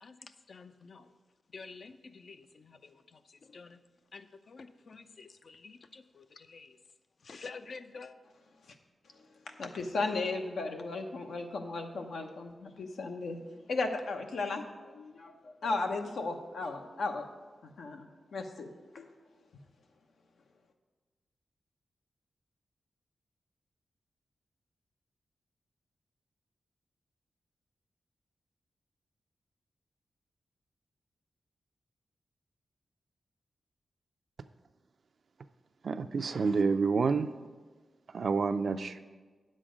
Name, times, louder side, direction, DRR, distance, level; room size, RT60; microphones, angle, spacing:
voice 1, 0.0-1.1 1.5-3.8 4.1-6.8 7.2-8.1, left 4 dB, 60° left, 0.5 m, -49 dB
voice 2, 9.0-13.4 13.7-17.3 17.6-19.1, left 3 dB, 85° left, 0.9 m, -36 dB
voice 3, 35.8-37.3 38.1-39.0, right 4 dB, 65° right, 0.4 m, -28 dB
9.2 x 7.4 x 5.1 m
cardioid pair, 80°, 0 cm